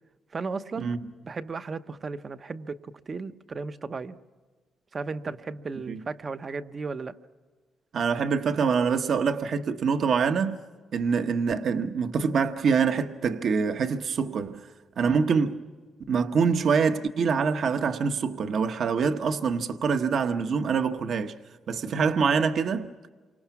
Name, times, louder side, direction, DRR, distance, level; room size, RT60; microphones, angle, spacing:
voice 1, 0.3-0.9 1.2-4.2 4.9-7.2, right 4 dB, 30° right, 0.8 m, -35 dB
voice 2, 7.9-10.6 10.9-14.6 15.0-15.6 16.1-21.3 21.7-22.9, right 5 dB, 50° right, 1.0 m, -25 dB
28.5 x 25.0 x 5.9 m
cardioid pair, 155°, 0 cm